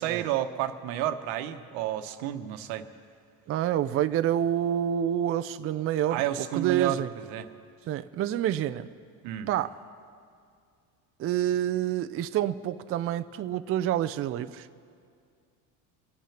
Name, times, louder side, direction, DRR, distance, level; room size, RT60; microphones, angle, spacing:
voice 1, 0.0-2.9 6.1-7.0 7.3-7.5 9.2-9.5, right 12 dB, 85° right, 9 dB, 1.1 m, -30 dB
voice 2, 3.5-6.2 6.5-7.1 7.9-8.9 9.5-9.7 11.2-14.7, right 11 dB, 35° right, 11 dB, 0.4 m, -28 dB
25.5 x 9.2 x 5.9 m, 2.2 s
supercardioid pair, 115°, 42 cm